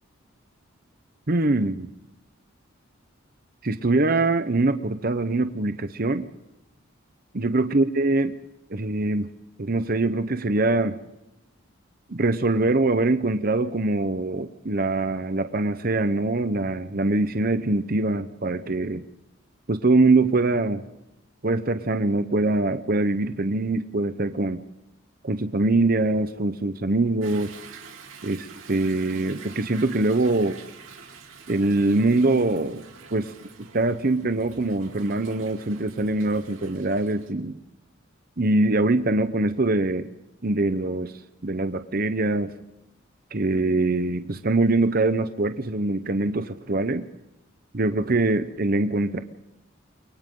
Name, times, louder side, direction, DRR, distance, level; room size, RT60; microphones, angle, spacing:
voice 1, 1.3-1.9 3.6-6.3 7.3-8.3 8.7-9.3 9.6-11.0 12.1-19.0 19.7-20.8 21.4-24.6 25.2-27.5 28.2-30.6 31.5-32.8 33.1-33.3 33.7-37.6 38.4-40.1 40.4-41.1 41.4-42.5 43.3-47.0 47.7-49.2, right 2 dB, 45° right, 10 dB, 0.9 m, -23 dB
Toilet flush / Drip / Trickle dribble, 27.2-37.3, right 6 dB, 85° right, 2.9 m, -46 dB
29.5 x 23.5 x 3.9 m, 0.89 s
head